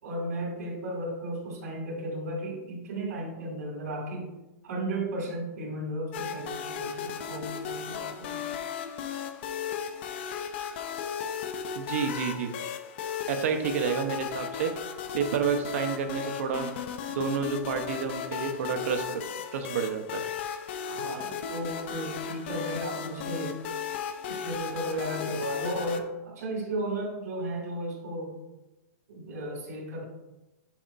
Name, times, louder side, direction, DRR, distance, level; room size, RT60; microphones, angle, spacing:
voice 1, 0.0-4.3 4.6-8.5 13.4-13.5 20.8-23.6 24.3-28.4 29.1-30.0, right 1 dB, 90° right, -3 dB, 2.1 m, -34 dB
sound 1, 6.1-26.0, left 7 dB, 45° left, 0.5 m, -35 dB
voice 2, 11.8-12.5 13.3-14.7 15.1-16.7 17.1-19.2 19.5-20.2, right 6 dB, 60° right, 6 dB, 0.8 m, -29 dB
7.1 x 5.4 x 2.5 m, 1.0 s
supercardioid pair, 170°, 9 cm